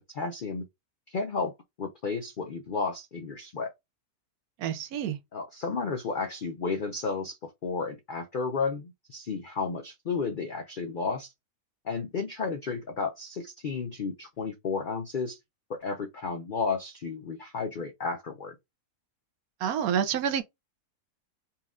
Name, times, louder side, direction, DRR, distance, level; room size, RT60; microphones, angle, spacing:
voice 1, 0.1-0.7 1.1-3.7 5.3-11.3 11.8-15.4 15.7-18.5, left 4 dB, 75° left, 0.4 m, -32 dB
voice 2, 4.6-5.2 19.6-20.4, right 8 dB, 75° right, 1.1 m, -28 dB
4.2 x 2.4 x 3.5 m
omnidirectional pair, 1.6 m